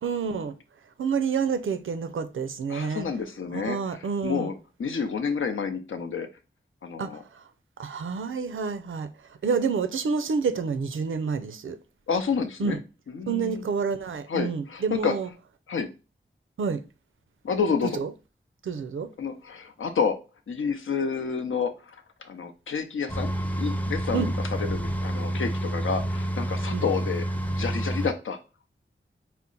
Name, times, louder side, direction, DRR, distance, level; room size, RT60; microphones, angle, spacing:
voice 1, 0.0-0.5 1.0-3.0 3.5-4.5 7.0-7.4 7.8-9.1 9.4-11.8 12.6-12.8 13.3-15.3 16.6-16.8 17.9-18.1 18.6-19.1 24.1-24.3 26.7-26.8, right 5 dB, 85° right, 0.4 m, -28 dB
voice 2, 2.7-3.8 4.2-6.3 6.8-7.2 12.1-12.8 13.1-13.6 14.3-15.1 15.7-15.9 17.4-18.0 19.2-20.2 20.5-27.2 27.6-28.4, left 6 dB, 90° left, 0.6 m, -29 dB
sound 1, 23.1-28.1, right 1 dB, 10° left, 0.4 m, -29 dB
4.3 x 2.1 x 3.7 m
wide cardioid pair, 65°, 20 cm